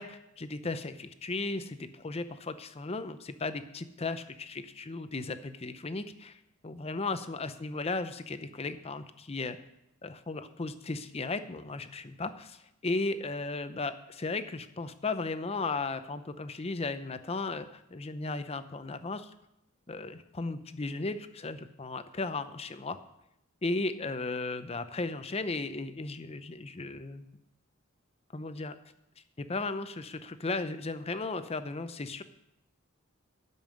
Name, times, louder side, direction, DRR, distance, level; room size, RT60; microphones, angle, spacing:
voice 1, 0.0-6.4 6.6-9.6 10.0-19.3 19.9-23.0 23.6-27.3 28.3-28.8 29.4-32.2, left 3 dB, 30° left, 11 dB, 0.6 m, -35 dB
12.5 x 5.5 x 7.7 m, 0.82 s
head